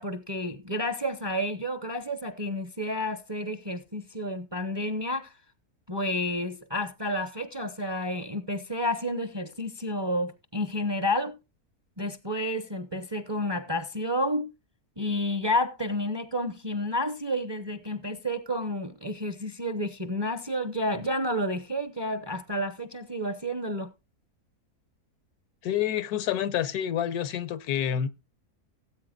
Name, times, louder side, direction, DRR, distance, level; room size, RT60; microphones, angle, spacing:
voice 1, 0.0-5.3 5.9-11.4 12.0-14.5 15.0-23.9, left 1 dB, 25° right, 0.6 m, -30 dB
voice 2, 25.6-28.1, left 10 dB, 80° left, 1.3 m, -28 dB
18.0 x 8.5 x 2.4 m
omnidirectional pair, 1.6 m